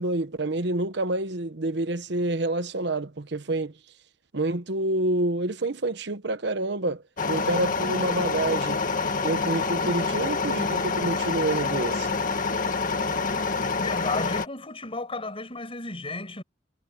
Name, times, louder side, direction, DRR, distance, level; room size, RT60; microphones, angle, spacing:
voice 1, 0.0-3.7 4.3-8.8 9.2-12.1, right 2 dB, 65° right, 1.1 m, -28 dB
sound 1, 7.2-14.5, left 4 dB, 50° left, 1.8 m, -27 dB
voice 2, 13.8-16.4, left 2 dB, 30° left, 6.8 m, -33 dB
head